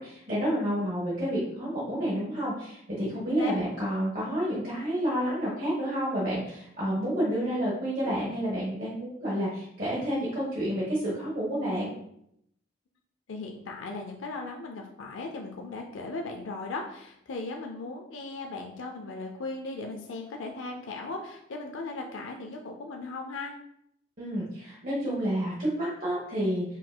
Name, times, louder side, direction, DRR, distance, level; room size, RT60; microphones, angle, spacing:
voice 1, 0.0-11.9 24.2-26.6, equal, 45° right, -7 dB, 1.1 m, -29 dB
voice 2, 13.3-23.5, left 3 dB, 75° left, 2 dB, 0.5 m, -37 dB
4.7 x 3.8 x 2.2 m, 0.75 s
head